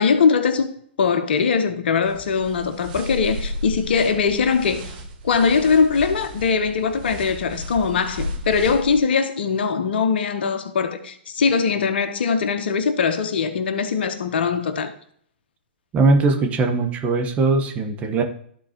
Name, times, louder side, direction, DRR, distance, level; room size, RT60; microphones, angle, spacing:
voice 1, 0.0-4.9 5.2-14.9, left 5 dB, 65° left, 1.0 m, -21 dB
sound 1, 2.0-9.0, equal, 50° right, 1.4 m, -33 dB
voice 2, 15.9-18.2, right 3 dB, 25° right, 1.3 m, -20 dB
13.5 x 4.5 x 3.0 m
hypercardioid pair, 120°, 6 cm